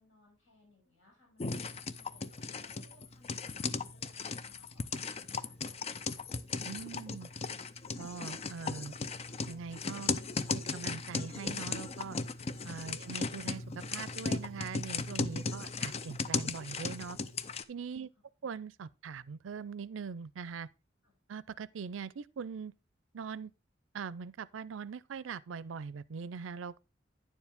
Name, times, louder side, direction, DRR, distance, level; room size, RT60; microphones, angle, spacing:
voice 1, 0.0-6.2 17.9-18.1 21.0-21.1, left 2 dB, 75° left, 6.0 m, -66 dB
sound 1, 1.4-17.6, left 4 dB, 35° left, 0.5 m, -37 dB
voice 2, 6.6-7.3 8.0-9.0 9.5-10.1 10.5-12.2 12.6-13.6 13.9-17.2 17.7-18.1 18.4-20.7 21.3-22.7 23.1-23.5 23.9-26.8, right 6 dB, 90° right, 0.4 m, -42 dB
9.8 x 7.3 x 3.5 m
head